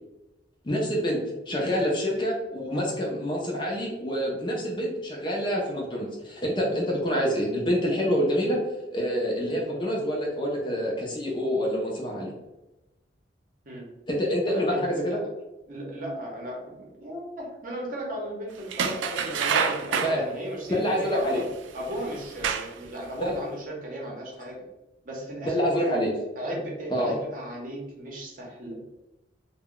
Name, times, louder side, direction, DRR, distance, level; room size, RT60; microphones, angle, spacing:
voice 1, 0.6-8.6 8.9-12.3 14.1-15.2 20.0-20.2 20.7-21.4 23.2-23.4 24.0-24.1 25.4-26.1 26.9-27.2, equal, 25° left, -2 dB, 0.5 m, -27 dB
voice 2, 14.5-14.8 15.7-21.4 21.7-24.6 25.0-25.8 26.4-28.8, right 1 dB, 45° right, -2 dB, 0.7 m, -36 dB
sound 1, 18.7-20.2 21.3-21.4 22.1-22.9 23.3-23.4, right 6 dB, 85° right, 0.3 m, -27 dB
2.2 x 2.1 x 3.7 m, 0.98 s
head